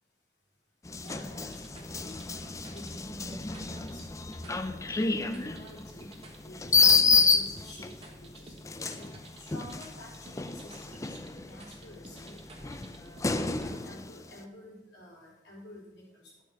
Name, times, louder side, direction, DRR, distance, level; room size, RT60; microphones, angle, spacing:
sound 1, 0.9-8.0 8.7-11.7 12.2-14.2, left 4 dB, 15° left, 0.4 m, -29 dB
voice 1, 1.0-1.7 2.0-4.0 4.4-4.6 4.9-6.1 6.4-9.1 9.4-11.1 11.4-13.2 13.5-16.4, equal, 70° left, -4 dB, 4.0 m, -48 dB
sound 2, 1.1-13.9, right 1 dB, 30° right, 1.3 m, -51 dB
12.0 x 6.6 x 5.8 m, 1.0 s
head